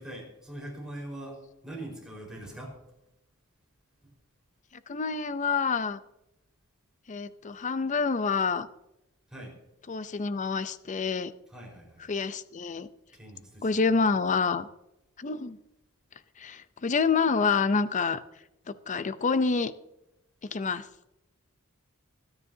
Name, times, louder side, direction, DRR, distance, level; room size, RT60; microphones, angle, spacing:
voice 1, 0.0-1.4 1.6-2.7 9.3-9.5 11.5-12.0 13.1-13.9, right 1 dB, 5° right, -3 dB, 4.6 m, -42 dB
voice 2, 4.9-6.0 7.1-8.7 9.9-11.3 12.0-12.9 13.6-14.7 15.2-15.6 16.4-18.2 18.7-19.7 20.5-20.8, left 5 dB, 35° left, 13 dB, 0.5 m, -27 dB
21.5 x 9.8 x 2.7 m, 0.88 s
head